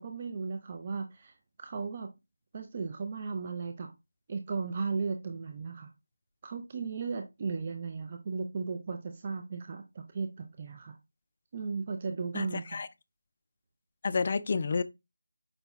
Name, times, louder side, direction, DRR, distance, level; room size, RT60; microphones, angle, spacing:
voice 1, 0.0-1.3 1.6-2.1 2.5-3.9 4.3-5.9 6.4-11.0 11.5-12.8, right 4 dB, 30° right, 0.5 m, -36 dB
voice 2, 12.3-12.9 14.0-14.8, left 4 dB, 40° left, 0.3 m, -30 dB
5.2 x 2.2 x 3.0 m
figure-of-eight pair, 165°, 0 cm